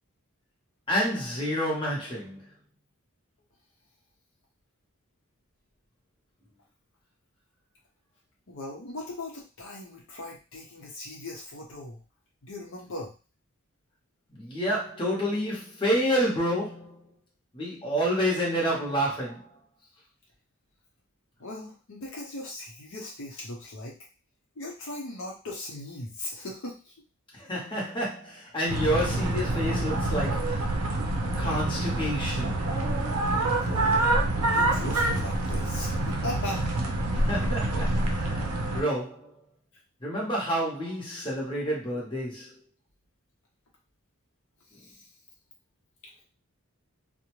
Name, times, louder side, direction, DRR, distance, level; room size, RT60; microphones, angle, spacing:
voice 1, 0.9-2.4 14.3-17.0 17.5-19.5 27.3-30.6 31.4-32.6 37.1-39.3 40.0-42.5, equal, 20° left, 0.9 m, -29 dB
voice 2, 8.5-12.0 12.4-13.1 21.4-24.0 24.6-26.9 33.5-34.1 34.4-36.7 44.7-45.1 46.0-46.1, left 2 dB, 65° left, 0.7 m, -38 dB
sound 1, 28.7-38.8, right 2 dB, 85° right, 0.5 m, -27 dB
2.5 x 2.1 x 3.0 m
head